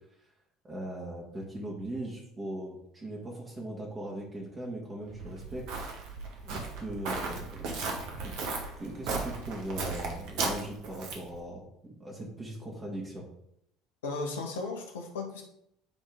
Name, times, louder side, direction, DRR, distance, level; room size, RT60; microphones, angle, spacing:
voice 1, 0.6-5.7 6.4-7.8 8.2-8.4 8.8-13.3, right 1 dB, 25° right, -3 dB, 1.7 m, -39 dB
Walk footsteps, 5.1-11.4, right 3 dB, 60° right, 1.2 m, -36 dB
voice 2, 14.0-15.4, left 3 dB, 75° left, 2 dB, 1.1 m, -35 dB
9.2 x 3.6 x 3.7 m, 0.75 s
figure-of-eight pair, 60°, 0 cm